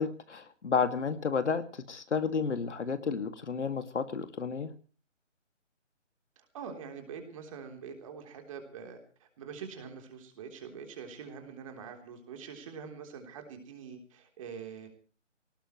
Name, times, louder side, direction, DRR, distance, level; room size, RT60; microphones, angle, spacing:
voice 1, 0.0-4.7, left 5 dB, 65° left, 10 dB, 2.3 m, -31 dB
voice 2, 6.4-9.0 9.4-14.9, right 6 dB, 25° right, 5 dB, 3.5 m, -44 dB
22.5 x 18.5 x 3.1 m, 0.38 s
hypercardioid pair, 160°, 37 cm